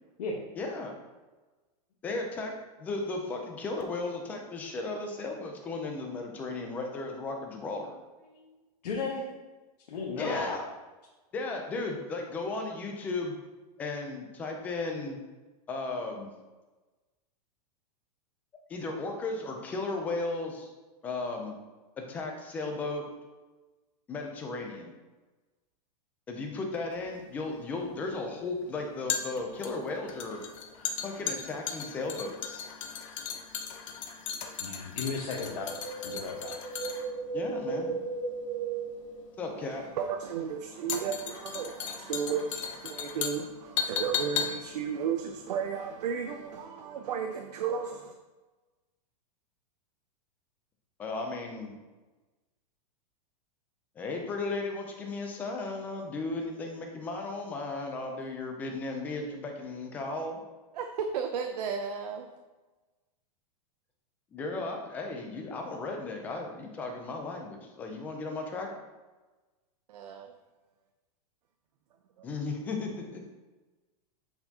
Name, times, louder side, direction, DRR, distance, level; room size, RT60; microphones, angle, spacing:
voice 1, 0.6-1.0 2.0-2.5 2.8-7.9 10.2-10.7 11.3-13.3 13.8-15.2 15.7-16.3 18.7-20.7 21.0-21.5 22.0-23.0 24.1-24.9 26.3-30.4 31.0-32.7 37.3-38.0 39.4-39.8 51.0-51.8 54.0-60.4 64.3-68.7 72.2-73.2, left 3 dB, 10° left, 2 dB, 0.3 m, -35 dB
voice 2, 8.8-9.2 9.9-10.5 34.6-35.7 36.0-36.6, left 4 dB, 85° left, -3 dB, 1.2 m, -34 dB
sound 1, 27.0-46.2 46.5-46.6, left 7 dB, 50° left, 0.7 m, -37 dB
Wind, 35.5-39.8 40.1-40.2, right 4 dB, 60° right, 1.0 m, -36 dB
voice 3, 39.6-48.1 60.7-62.3 69.9-70.3 72.2-72.3, right 7 dB, 80° right, 4 dB, 0.6 m, -34 dB
7.7 x 4.4 x 2.8 m, 1.2 s
supercardioid pair, 175°, 20 cm